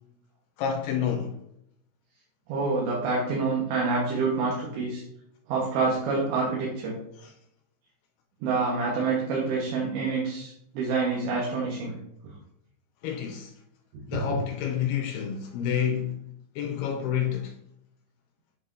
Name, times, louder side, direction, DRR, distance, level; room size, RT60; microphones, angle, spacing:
voice 1, 0.6-1.4 7.2-7.3 13.0-13.5 14.1-16.2 16.6-17.5, left 8 dB, 80° left, 2.5 m, -29 dB
voice 2, 2.5-5.0 5.5-7.0 8.4-12.0 12.2-12.3 13.9-14.0, right 4 dB, 85° right, 3.6 m, -27 dB
8.6 x 5.7 x 2.6 m
omnidirectional pair, 4.9 m